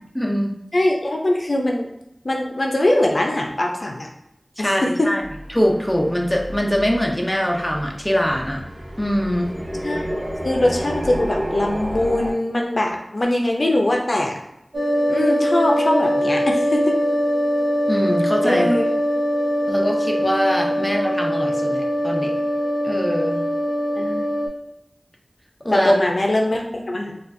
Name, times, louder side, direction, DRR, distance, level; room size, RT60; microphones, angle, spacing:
voice 1, 0.1-0.5 4.6-5.2 5.5-8.6 9.0-9.5 17.9-18.8 19.7-22.3 22.8-23.5 25.6-25.9, equal, 10° left, 0 dB, 0.6 m, -22 dB
voice 2, 0.7-1.9 2.2-4.1 4.6-4.7 5.0-5.1 9.8-14.4 15.1-16.9 18.4-18.8 20.8-20.9 24.0-24.3 25.7-27.1, left 1 dB, 60° left, 1 dB, 0.5 m, -21 dB
sound 1, 5.2-12.3, equal, 30° right, 1.1 m, -31 dB
sound 2, 14.7-24.5, equal, 80° right, 0.9 m, -22 dB
4.2 x 2.4 x 2.6 m, 0.84 s
wide cardioid pair, 55°, 0 cm